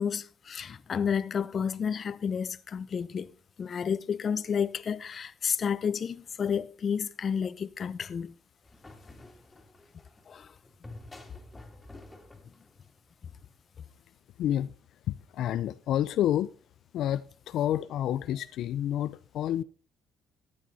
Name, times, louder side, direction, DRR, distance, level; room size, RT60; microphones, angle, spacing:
voice 1, 0.0-3.3 3.6-8.3 10.3-10.5, left 7 dB, 45° left, 0.7 m, -31 dB
sound 1, 8.6-13.5, left 2 dB, 15° left, 2.8 m, -50 dB
voice 2, 14.4-14.7 15.1-16.5 16.9-19.6, left 11 dB, 75° left, 0.4 m, -29 dB
14.0 x 8.9 x 4.1 m
cardioid pair, 100°, 0 cm